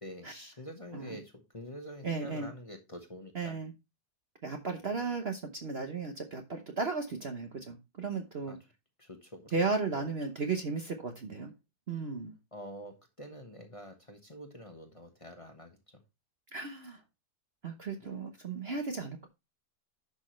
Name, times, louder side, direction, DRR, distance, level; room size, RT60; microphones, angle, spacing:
voice 1, 0.0-3.6 4.8-5.0 8.5-8.6 9.0-9.6 9.9-10.1 12.5-16.0 18.0-18.1, equal, 20° left, 1.2 m, -47 dB
voice 2, 2.0-2.5 3.3-3.7 4.4-8.6 9.5-11.5 11.9-12.3 16.5-17.0 17.6-19.3, right 4 dB, 45° right, 1.0 m, -35 dB
10.5 x 6.2 x 3.1 m
omnidirectional pair, 1.7 m